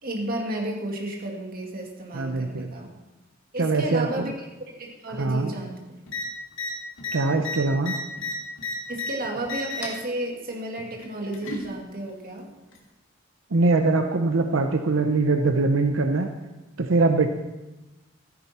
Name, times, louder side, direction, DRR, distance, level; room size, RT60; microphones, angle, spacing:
voice 1, 0.0-2.9 3.5-4.5 4.8-5.9 8.9-12.5, right 1 dB, 50° right, 1 dB, 2.1 m, -32 dB
voice 2, 2.1-2.7 3.6-4.3 5.2-5.5 7.1-7.9 13.5-16.3 16.8-17.3, right 3 dB, 85° right, 6 dB, 0.7 m, -22 dB
sound 1, 6.1-6.2 6.5-6.7 7.0-9.1 9.4-10.0 11.0-11.7 12.7-12.8, left 3 dB, 75° left, 2.1 m, -32 dB
14.0 x 10.0 x 4.3 m, 1.1 s
head